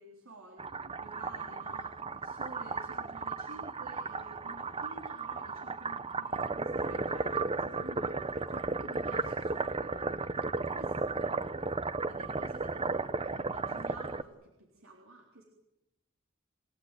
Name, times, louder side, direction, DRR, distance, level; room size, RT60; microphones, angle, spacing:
voice 1, 0.0-11.6 12.0-15.4, right 2 dB, 90° right, 0 dB, 3.9 m, -51 dB
sound 1, 0.6-14.2, right 3 dB, 30° right, 1.0 m, -34 dB
29.5 x 17.0 x 9.3 m, 0.93 s
head